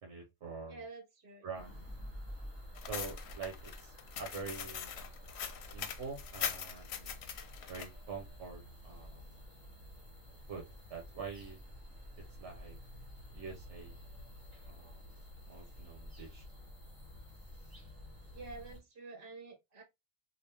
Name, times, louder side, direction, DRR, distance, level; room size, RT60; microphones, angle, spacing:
voice 1, 0.0-0.8 1.4-1.7 2.8-4.9 5.6-7.2 7.7-9.3 10.5-10.6 10.9-11.6 12.4-12.8 13.3-14.0 14.6-15.0 15.5-16.5, right 5 dB, 75° right, 1.1 m, -45 dB
voice 2, 0.7-1.5 18.3-19.8, right 3 dB, 55° right, 1.2 m, -49 dB
sound 1, 1.5-18.8, equal, 20° left, 1.6 m, -51 dB
sound 2, 2.8-7.9, left 8 dB, 70° left, 0.8 m, -41 dB
3.4 x 2.4 x 2.8 m
omnidirectional pair, 1.2 m